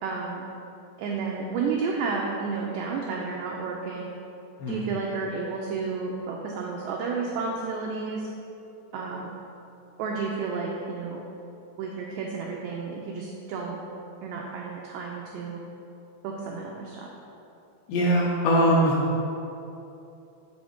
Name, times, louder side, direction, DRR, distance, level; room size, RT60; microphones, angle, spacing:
voice 1, 0.0-0.5 1.0-4.1 4.7-8.3 8.9-9.4 10.0-11.2 11.8-13.8 14.2-15.6 16.2-17.1, right 4 dB, 85° right, -1 dB, 2.4 m, -31 dB
voice 2, 17.9-19.0, equal, 75° left, -3 dB, 2.6 m, -21 dB
7.5 x 5.0 x 7.0 m, 2.8 s
omnidirectional pair, 5.7 m